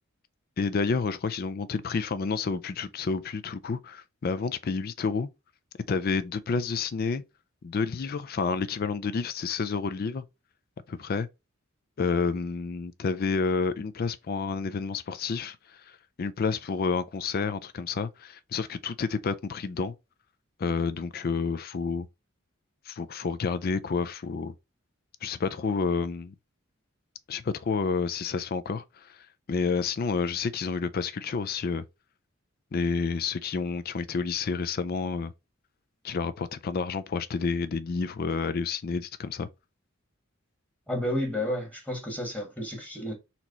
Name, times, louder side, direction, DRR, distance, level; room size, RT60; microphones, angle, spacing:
voice 1, 0.6-5.3 5.9-7.2 7.6-10.2 10.9-11.3 12.0-15.6 16.2-19.9 20.6-22.1 22.9-24.5 25.2-26.3 27.3-31.8 32.7-35.3 36.0-39.5, left 5 dB, 45° left, 0.4 m, -29 dB
voice 2, 40.9-43.1, left 1 dB, 5° left, 1.2 m, -31 dB
4.2 x 3.0 x 3.9 m
head